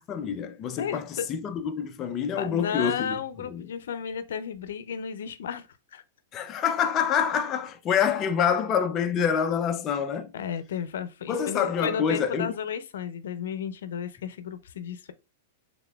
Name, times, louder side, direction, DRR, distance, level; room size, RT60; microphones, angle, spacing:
voice 1, 0.1-3.2 3.5-3.6 6.3-10.3 11.3-12.5, left 7 dB, 25° left, 0.4 m, -26 dB
voice 2, 0.8-1.3 2.4-6.0 10.3-15.1, left 7 dB, 85° left, 0.5 m, -33 dB
3.9 x 3.5 x 2.2 m
supercardioid pair, 150°, 0 cm